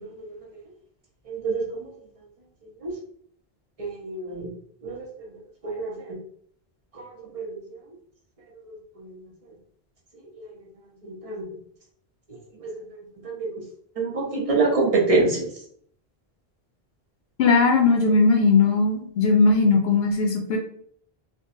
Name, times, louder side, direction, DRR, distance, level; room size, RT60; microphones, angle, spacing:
voice 1, 1.3-1.9 2.8-2.9 3.8-4.5 4.8-5.1 5.6-6.2 6.9-7.1 7.3-7.6 8.7-9.1 10.4-10.5 11.0-11.4 13.2-13.5 14.0-15.5, right 3 dB, 35° right, -2 dB, 0.9 m, -26 dB
voice 2, 17.4-20.6, left 4 dB, 75° left, 2 dB, 0.8 m, -19 dB
3.7 x 2.8 x 2.6 m, 0.63 s
omnidirectional pair, 1.0 m